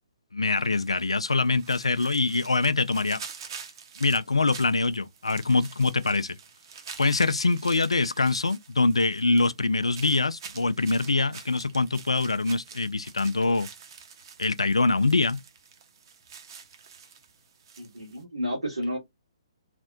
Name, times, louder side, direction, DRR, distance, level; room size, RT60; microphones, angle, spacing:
voice 1, 0.3-3.2 4.0-6.4 7.0-13.7 14.4-15.4, left 3 dB, 90° left, 0.3 m, -24 dB
sound 1, 0.6-18.2, right 6 dB, 50° right, 0.8 m, -47 dB
voice 2, 17.8-19.0, equal, 85° right, 1.6 m, -31 dB
3.3 x 2.1 x 2.5 m
figure-of-eight pair, 135°, 3 cm